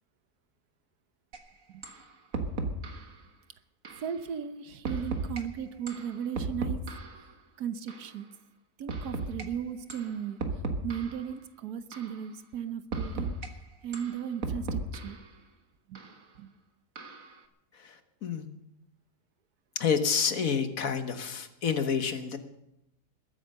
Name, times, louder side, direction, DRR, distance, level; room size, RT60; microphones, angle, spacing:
sound 1, 1.3-1.4 1.8-2.0 2.3-3.1 3.9-4.1 4.9-5.4 5.9-7.2 7.9-8.1 8.9-9.5 9.9-10.1 10.4-11.2 11.9-12.2 12.9-13.5 13.9-15.2 16.0-16.1 17.0-17.3, right 3 dB, 60° right, 1.8 m, -35 dB
voice 1, 4.0-6.8 7.6-8.3 8.8-13.3 13.8-15.2 15.9-16.0 16.4-16.5, right 8 dB, 75° right, 12 dB, 1.4 m, -36 dB
voice 2, 17.7-18.5 19.8-22.4, left 6 dB, 60° left, 8 dB, 1.6 m, -29 dB
21.0 x 9.1 x 6.6 m, 0.82 s
omnidirectional pair, 1.7 m